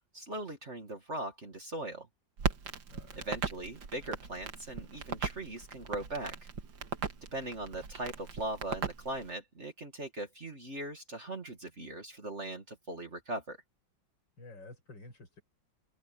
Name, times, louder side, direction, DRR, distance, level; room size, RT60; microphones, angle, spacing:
voice 1, 0.1-2.1 3.2-6.5 7.3-13.6, right 1 dB, 40° right, 2.6 m, -40 dB
Crackle, 2.4-9.3, right 6 dB, 90° right, 2.6 m, -38 dB
voice 2, 2.9-3.3 14.4-15.4, left 2 dB, 90° left, 7.1 m, -51 dB
omnidirectional pair, 2.0 m